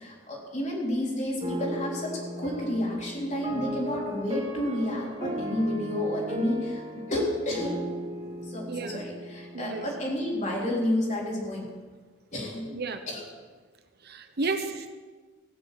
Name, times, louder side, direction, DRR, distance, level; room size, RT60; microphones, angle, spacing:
voice 1, 0.0-6.8 7.1-7.8 8.5-11.7 12.3-12.7 13.1-13.2, left 1 dB, 40° left, -3 dB, 3.8 m, -30 dB
sound 1, 1.4-10.6, equal, 30° right, 2.5 m, -37 dB
voice 2, 8.7-9.0 9.5-9.9 12.7-13.0 14.0-14.9, right 3 dB, 55° right, 8 dB, 0.9 m, -32 dB
16.5 x 7.0 x 8.2 m, 1.4 s
head